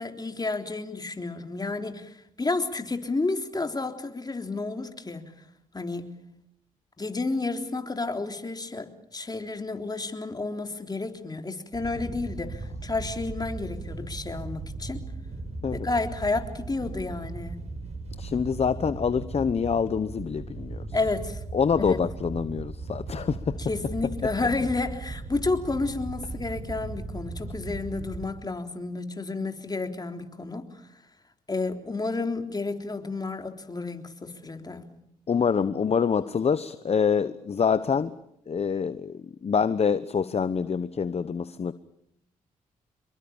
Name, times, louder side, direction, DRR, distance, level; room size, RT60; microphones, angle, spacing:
voice 1, 0.0-5.3 5.7-6.2 7.0-15.0 15.7-17.6 20.9-21.4 21.8-22.0 23.7-30.6 31.5-34.9, left 3 dB, 25° left, 3.7 m, -31 dB
Wind / Boat Water vehicle, 11.7-28.2, right 3 dB, 50° right, 6.3 m, -37 dB
voice 2, 18.2-20.9 21.5-23.6 35.3-38.1 38.5-41.7, left 6 dB, 45° left, 1.0 m, -26 dB
27.0 x 22.5 x 7.3 m
supercardioid pair, 55°, 15 cm